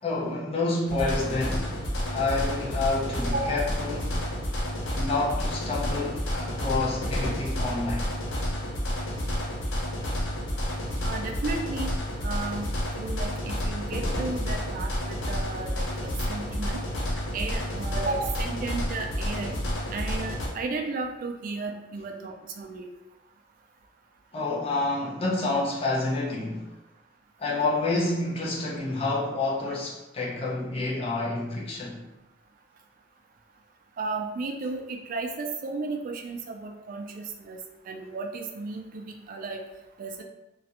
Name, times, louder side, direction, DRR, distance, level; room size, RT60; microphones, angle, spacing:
voice 1, 0.0-1.8 2.1-4.2 4.9-8.1 24.3-26.7 27.4-32.0, left 2 dB, 30° left, 0.5 m, -28 dB
sound 1, 0.9-20.5, equal, 80° left, 0.6 m, -30 dB
voice 2, 11.0-12.7 13.0-16.8 17.3-19.5 19.9-22.9 34.0-37.6 37.9-39.6 40.0-40.2, right 3 dB, 50° right, 0.3 m, -34 dB
2.3 x 2.1 x 2.8 m
head